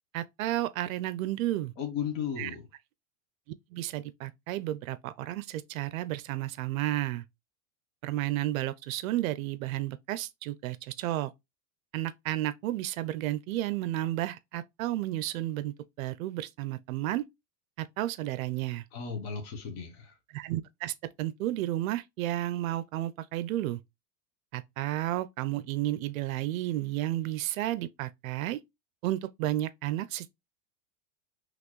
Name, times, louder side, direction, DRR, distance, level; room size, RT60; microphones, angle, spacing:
voice 1, 0.1-1.7 2.4-2.5 3.7-7.2 8.0-11.3 11.9-17.2 17.8-18.8 20.3-23.8 24.5-28.6 29.0-30.3, right 15 dB, 65° right, 0.5 m, -32 dB
voice 2, 1.8-2.7 18.9-20.2, left 7 dB, 45° left, 1.1 m, -35 dB
4.1 x 3.1 x 3.0 m
supercardioid pair, 170°, 46 cm